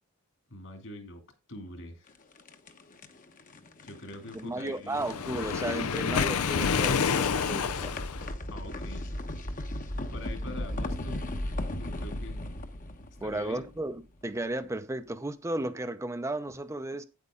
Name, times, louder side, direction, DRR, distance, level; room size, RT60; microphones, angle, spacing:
voice 1, 0.5-1.2 1.5-2.2 3.8-5.1 8.5-9.1 10.1-11.2 11.8-12.4 13.2-13.7, left 1 dB, 60° left, 2.6 m, -44 dB
sound 1, 2.1-14.2, left 1 dB, 40° left, 1.0 m, -38 dB
voice 2, 4.3-7.9 13.2-17.0, right 1 dB, 15° right, 0.6 m, -34 dB
Waves surf, 5.0-8.3, left 6 dB, 85° left, 0.6 m, -28 dB
9.4 x 8.2 x 3.7 m
head